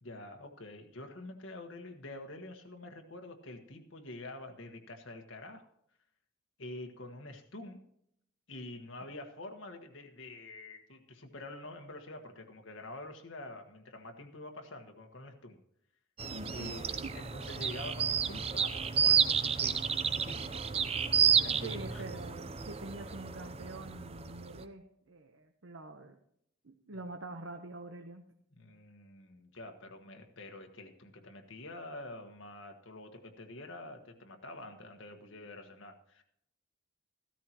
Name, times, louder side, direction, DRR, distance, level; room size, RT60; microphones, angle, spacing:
voice 1, 0.0-5.7 6.6-7.8 8.5-15.6 16.5-19.9 20.3-20.6 21.4-22.0 26.9-27.0 28.5-36.2, left 2 dB, 75° left, 4 dB, 1.5 m, -47 dB
sound 1, 16.2-24.6, right 7 dB, 30° right, 0.6 m, -31 dB
voice 2, 16.3-16.7 21.6-26.2 26.6-28.2, right 2 dB, 85° right, 5 dB, 1.0 m, -45 dB
15.0 x 13.0 x 3.0 m, 0.73 s
head